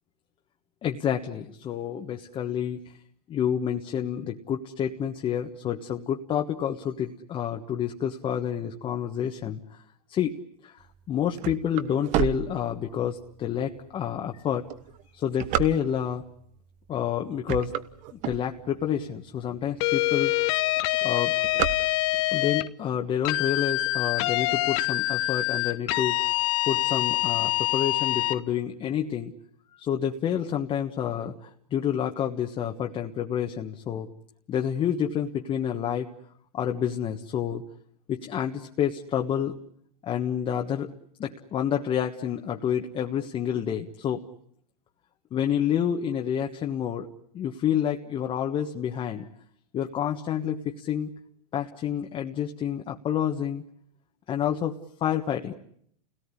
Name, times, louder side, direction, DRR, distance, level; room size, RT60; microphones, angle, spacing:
voice 1, 0.8-2.8 3.3-9.8 10.1-10.4 10.6-14.6 15.1-16.2 16.9-17.7 18.2-20.3 21.0-21.4 22.3-26.3 26.7-29.3 29.7-34.1 34.5-36.1 36.5-37.6 38.1-39.5 40.0-40.9 41.2-44.2 45.3-47.1 47.3-49.3 49.7-51.1 51.5-53.6 54.3-55.5, left 9 dB, 25° left, 3 dB, 1.4 m, -29 dB
sound 1, 10.9-13.2 13.8-13.9 14.5-16.2 16.9-17.1 17.4-18.9 19.4-19.5 19.7-19.8 20.1-20.5 20.8-22.4, right 11 dB, 40° right, 1.3 m, -30 dB
sound 2, 19.8-22.7 23.2-28.4, left 19 dB, 50° left, 1.0 m, -25 dB
28.5 x 18.0 x 9.8 m, 0.70 s
hypercardioid pair, 125°, 20 cm